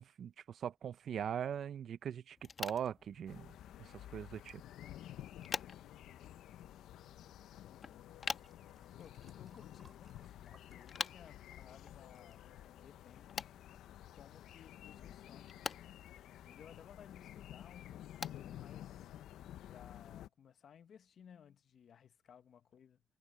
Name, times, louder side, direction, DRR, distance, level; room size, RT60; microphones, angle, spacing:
voice 1, 0.0-3.5 3.8-4.6, right 8 dB, 60° right, 0.5 m, -41 dB
sound 1, 2.4-19.6, left 5 dB, 40° left, 1.3 m, -49 dB
sound 2, 3.3-20.3, left 12 dB, 80° left, 0.7 m, -52 dB
voice 2, 7.0-8.0 9.0-13.4 14.1-15.6 16.4-19.1 19.7-23.0, left 8 dB, 60° left, 1.3 m, -60 dB
sound 3, 8.1-11.6 11.9-12.4 13.1-13.2, right 4 dB, 30° right, 7.6 m, -70 dB
cardioid pair, 90°, 0 cm